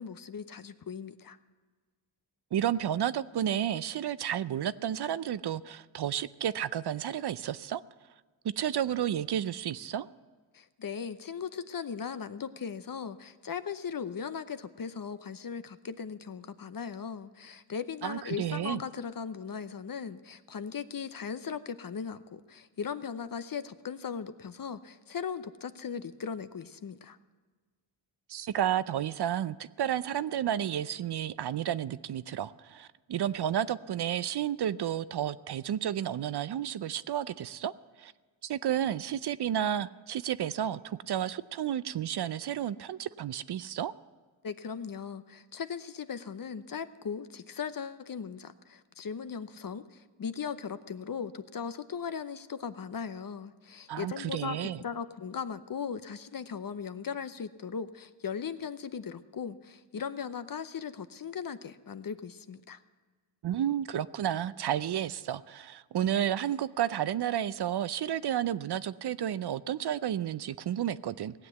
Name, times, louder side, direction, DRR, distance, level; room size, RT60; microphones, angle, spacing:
voice 1, 0.0-1.4 10.5-27.2 44.4-62.8, left 6 dB, 45° left, 12 dB, 0.8 m, -38 dB
voice 2, 2.5-7.8 8.6-10.1 18.0-18.8 28.3-37.7 38.0-38.1 38.4-43.9 53.9-54.8 63.4-71.5, right 10 dB, 55° right, 16 dB, 0.5 m, -31 dB
17.5 x 7.8 x 8.2 m, 1.4 s
cardioid pair, 55°, 48 cm